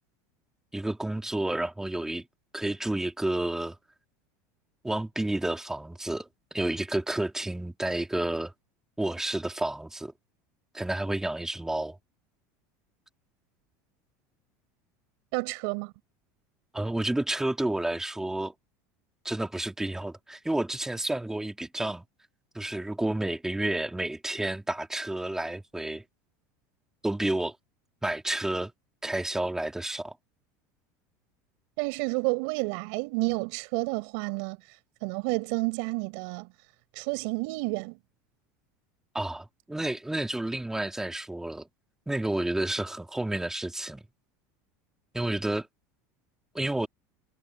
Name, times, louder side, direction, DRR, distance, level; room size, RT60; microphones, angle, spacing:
voice 1, 0.7-2.3 2.5-3.8 4.8-8.5 9.0-10.1 10.7-12.0 16.7-18.5 19.2-22.0 22.5-26.0 27.0-27.6 28.0-28.7 29.0-30.2 39.1-41.7 42.1-44.0 45.1-45.7 46.5-46.9, right 1 dB, 5° right, 2.4 m, -30 dB
voice 2, 15.3-15.9 31.8-34.6 35.0-36.5 36.9-38.0, right 32 dB, 70° right, 7.4 m, -30 dB
supercardioid pair, 120°, 9 cm